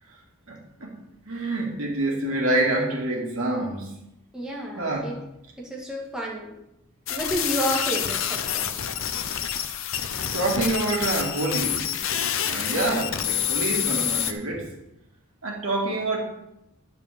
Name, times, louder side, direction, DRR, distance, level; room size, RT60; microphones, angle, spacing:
voice 1, 0.5-1.0 1.3-3.9 4.8-5.1 10.2-12.0 12.5-14.7 15.4-16.2, right 2 dB, 75° right, -1 dB, 2.3 m, -27 dB
voice 2, 4.3-5.1 5.6-6.5 7.1-8.7, equal, 5° right, -4 dB, 1.7 m, -30 dB
sound 1, 7.1-14.3, left 9 dB, 65° left, 0.7 m, -27 dB
10.0 x 4.9 x 6.7 m, 0.87 s
head